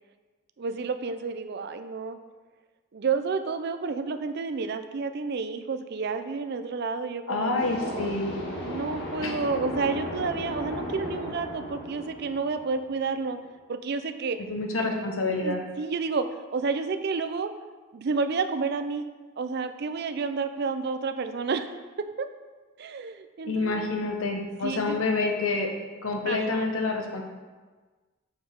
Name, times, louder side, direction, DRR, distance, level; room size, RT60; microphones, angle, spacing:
voice 1, 0.6-2.2 2.9-8.2 8.6-13.4 13.7-14.4 15.4-16.3 16.5-17.5 17.9-19.1 19.4-22.3 22.8-23.7 24.6-25.0 26.2-26.7, right 4 dB, 55° right, 9 dB, 0.4 m, -30 dB
voice 2, 7.3-8.4 9.2-9.4 14.5-15.6 23.5-25.7 26.0-27.2, left 3 dB, 85° left, 2 dB, 1.2 m, -28 dB
sound 1, 7.6-13.2, left 1 dB, 55° left, 2.0 m, -36 dB
7.2 x 5.0 x 5.2 m, 1.3 s
head